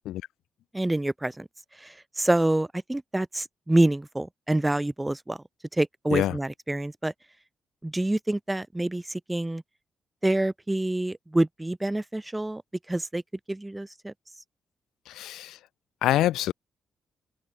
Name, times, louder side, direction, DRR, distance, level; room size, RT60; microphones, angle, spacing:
voice 1, 0.7-1.5 1.8-5.4 5.8-7.1 7.8-9.6 10.2-12.6 12.9-13.2 13.5-14.1, right 1 dB, 15° right, 2.1 m, -27 dB
voice 2, 15.1-15.6 16.0-16.5, left 14 dB, 90° left, 3.1 m, -25 dB
open air
cardioid pair, 70°, 0 cm